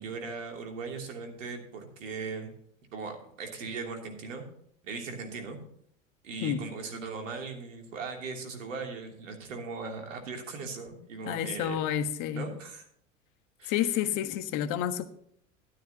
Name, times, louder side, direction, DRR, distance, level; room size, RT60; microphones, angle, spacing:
voice 1, 0.0-2.5 2.9-4.4 4.8-5.6 6.2-11.8 12.3-12.9 13.6-13.9, right 4 dB, 75° right, 3.0 m, -39 dB
voice 2, 11.3-12.5 13.7-15.1, left 10 dB, 50° left, 1.3 m, -29 dB
13.0 x 12.0 x 2.9 m
hypercardioid pair, 85°, 39 cm